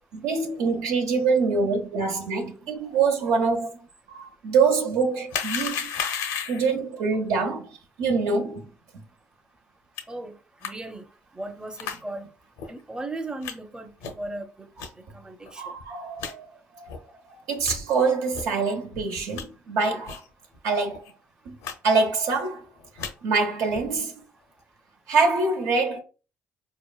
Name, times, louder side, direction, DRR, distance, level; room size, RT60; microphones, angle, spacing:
voice 1, 0.1-3.8 4.1-5.9 6.5-7.7 8.0-8.6 15.6-16.5 16.7-16.9 17.3-20.2 20.6-21.0 21.4-21.6 21.8-22.6 23.2-24.1 25.1-26.0, right 4 dB, 80° right, 0.9 m, -25 dB
sound 1, 5.3-6.7 10.0-10.1 10.6-10.7 11.8-12.0 12.6-12.7 13.4-13.5 14.0-14.3 14.8-14.9 15.5-15.6 15.8-15.9 16.2-16.3 16.9-17.0 17.6-17.8 18.3-18.5 18.9-19.4 20.1-20.3 20.5-20.6 20.9-21.1 21.6-21.7 22.0-22.4 22.8-23.1 23.7-24.0, left 7 dB, 85° left, 0.6 m, -33 dB
voice 2, 10.6-11.0 11.3-12.3 12.7-13.9 14.2-14.7 15.1-15.6, right 2 dB, 15° right, 0.6 m, -36 dB
4.3 x 2.8 x 2.3 m
supercardioid pair, 70°, 6 cm